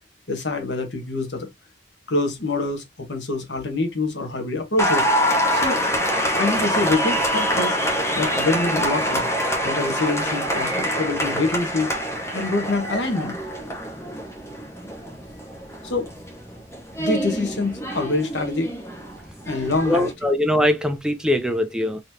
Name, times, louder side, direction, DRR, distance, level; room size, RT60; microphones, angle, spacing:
voice 1, 0.3-1.5 2.1-5.1 5.5-5.8 6.4-7.8 8.1-9.3 9.6-11.9 12.3-13.4 15.8-16.1 17.0-18.7 19.4-20.1, left 2 dB, 70° left, 1.3 m, -25 dB
Applause, 4.8-20.1, equal, 15° left, 1.0 m, -25 dB
voice 2, 19.9-22.0, left 1 dB, 5° right, 0.4 m, -21 dB
4.0 x 3.1 x 2.8 m
head